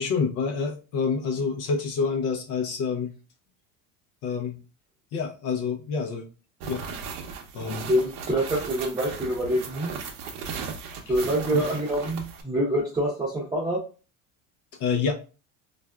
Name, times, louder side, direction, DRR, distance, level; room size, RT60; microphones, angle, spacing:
voice 1, 0.0-3.1 4.2-4.6 5.1-6.3 6.6-6.8 7.5-7.9 11.1-11.2 11.5-11.6 14.8-15.1, left 5 dB, 55° left, 2 dB, 0.6 m, -27 dB
sound 1, 6.6-12.4, right 5 dB, 65° right, 0.7 m, -36 dB
voice 2, 7.9-9.9 11.1-13.8, right 1 dB, 10° right, -6 dB, 0.7 m, -26 dB
3.3 x 2.5 x 2.3 m, 0.34 s
supercardioid pair, 125°, 37 cm